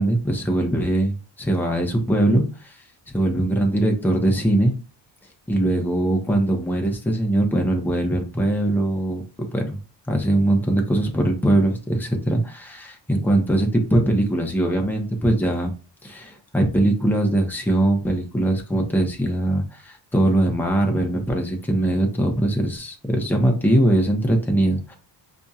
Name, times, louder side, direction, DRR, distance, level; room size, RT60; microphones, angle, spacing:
voice 1, 0.0-2.8 3.1-4.7 5.5-9.8 10.1-15.7 16.0-24.9, right 1 dB, 5° left, 2 dB, 0.9 m, -21 dB
6.1 x 2.8 x 2.4 m, 0.36 s
cardioid pair, 115°, 43 cm